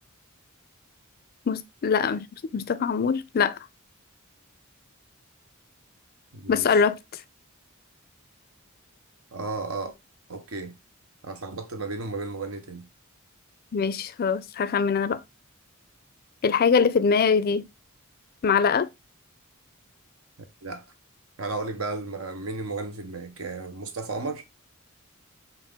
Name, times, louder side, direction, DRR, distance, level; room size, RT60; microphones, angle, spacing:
voice 1, 1.5-3.6 6.5-7.0 13.7-15.2 16.4-17.6 18.4-18.9, left 6 dB, 45° left, 0.4 m, -23 dB
voice 2, 6.3-6.8 9.3-9.9 10.3-10.8 11.2-12.9 20.6-20.8 21.4-24.4, right 3 dB, 75° right, 0.8 m, -34 dB
5.5 x 2.5 x 3.5 m
head